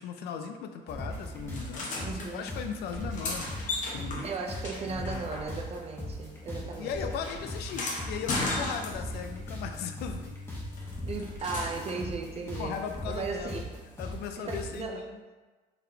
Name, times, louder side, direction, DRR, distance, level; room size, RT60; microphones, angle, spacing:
voice 1, 0.0-2.1 2.3-4.3 4.8-5.3 6.8-10.4 12.6-13.6 14.0-15.2, left 7 dB, 75° left, 7 dB, 0.4 m, -38 dB
sound 1, 0.9-14.8, left 1 dB, 15° left, 1.0 m, -40 dB
sound 2, 1.5-2.3 2.9-5.9 6.1-9.3 10.8-12.0 14.0-14.1, left 2 dB, 50° left, 0.9 m, -36 dB
voice 2, 2.0-2.5 4.2-7.0 11.1-13.7 14.4-15.2, right 4 dB, 35° right, 3 dB, 0.5 m, -36 dB
4.0 x 3.4 x 2.8 m, 1.3 s
cardioid pair, 110°, 17 cm